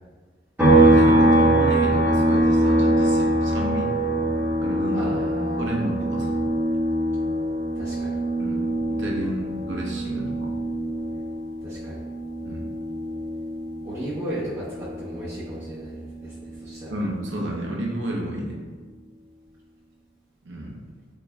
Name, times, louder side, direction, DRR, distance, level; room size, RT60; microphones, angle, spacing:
sound 1, 0.6-14.1 14.5-16.7, right 1 dB, 10° right, 1.2 m, -23 dB
voice 1, 0.6-3.9 4.6-5.1 5.6-6.4 8.4-10.5 12.4-12.7 16.9-18.6 20.4-20.8, right 1 dB, 75° right, -2 dB, 0.7 m, -31 dB
voice 2, 4.9-5.8 7.7-8.2 11.6-12.0 13.8-17.0, equal, 35° right, -16 dB, 1.2 m, -35 dB
5.1 x 2.6 x 2.2 m, 1.5 s
head